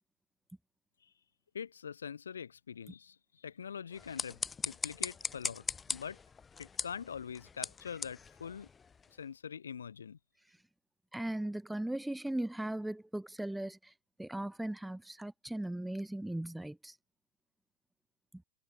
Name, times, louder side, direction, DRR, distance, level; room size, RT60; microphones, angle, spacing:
voice 1, 1.5-4.4 4.6-5.6 5.9-6.2 6.6-8.7 9.2-10.2, left 7 dB, 70° left, 2.9 m, -43 dB
sound 1, 3.9-9.2, left 5 dB, 15° left, 1.3 m, -40 dB
voice 2, 11.1-13.9 14.2-17.0 18.3-18.4, right 1 dB, 5° right, 1.2 m, -38 dB
figure-of-eight pair, 90°, 0 cm